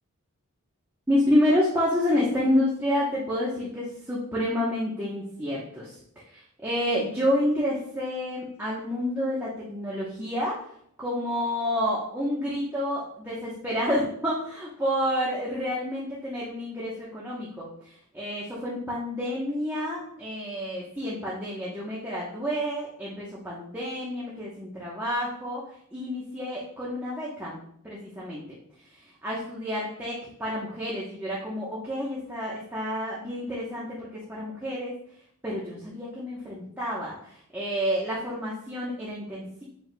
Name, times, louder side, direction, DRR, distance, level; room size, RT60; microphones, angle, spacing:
voice 1, 1.1-6.0 6.3-10.6 11.0-27.6 27.8-28.4 28.9-34.9 35.4-39.6, left 1 dB, 10° right, -7 dB, 1.0 m, -29 dB
7.9 x 5.2 x 2.3 m, 0.67 s
head